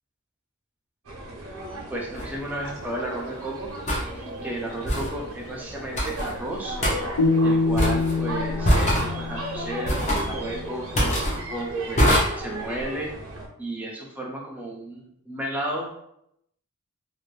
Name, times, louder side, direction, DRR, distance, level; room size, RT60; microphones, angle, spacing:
sound 1, 1.0-13.5, right 1 dB, 85° right, 0.7 m, -35 dB
voice 1, 1.9-3.7 4.1-6.8 7.4-13.1 13.6-15.9, right 1 dB, 5° right, -2 dB, 0.4 m, -33 dB
sound 2, 2.2-2.3 3.9-4.1 4.9-5.1 6.0-6.3 6.8-7.0 7.8-8.2 8.6-9.1 9.9-10.3 11.0-11.4 12.0-12.2, equal, 30° left, 0.7 m, -22 dB
sound 3, 7.2-10.3, left 3 dB, 90° left, 0.6 m, -25 dB
2.5 x 2.5 x 3.1 m, 0.76 s
head